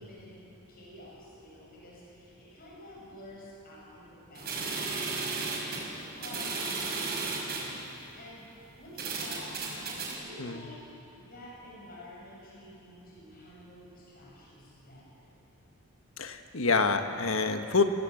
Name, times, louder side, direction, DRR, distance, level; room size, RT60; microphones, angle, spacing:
voice 1, 0.0-5.3 5.9-8.5 8.8-15.3, left 1 dB, 45° left, -4 dB, 6.2 m, -50 dB
sound 1, 4.4-7.7 8.4-8.5 9.0-10.1, right 4 dB, 45° right, 5.8 m, -34 dB
voice 2, 16.2-17.8, left 4 dB, 70° left, 7 dB, 1.4 m, -27 dB
27.0 x 17.5 x 7.8 m, 3.0 s
head